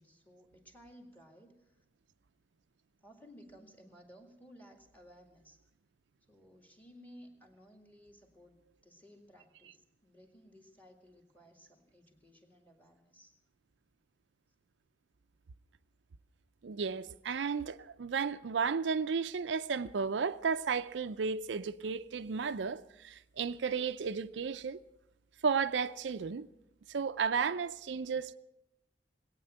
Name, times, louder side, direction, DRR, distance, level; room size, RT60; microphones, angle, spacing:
voice 1, 0.0-1.8 3.0-5.6 6.3-13.3, equal, 10° left, 2.1 m, -58 dB
voice 2, 16.6-24.8 25.4-26.5 26.9-28.3, right 5 dB, 85° right, 0.5 m, -33 dB
19.5 x 9.0 x 7.7 m
head